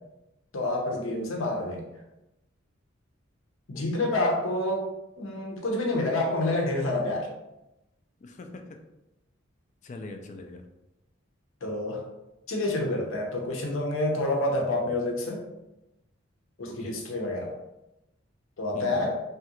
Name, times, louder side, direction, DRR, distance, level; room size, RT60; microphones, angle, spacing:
voice 1, 0.5-1.9 3.7-7.3 11.6-12.0 12.5-15.4 16.6-17.5 18.6-19.2, left 2 dB, 75° left, 1 dB, 0.7 m, -28 dB
voice 2, 8.2-8.6 9.8-10.6 16.6-16.9 18.7-19.0, left 2 dB, 35° left, 5 dB, 0.3 m, -42 dB
3.2 x 2.4 x 2.9 m, 0.93 s
head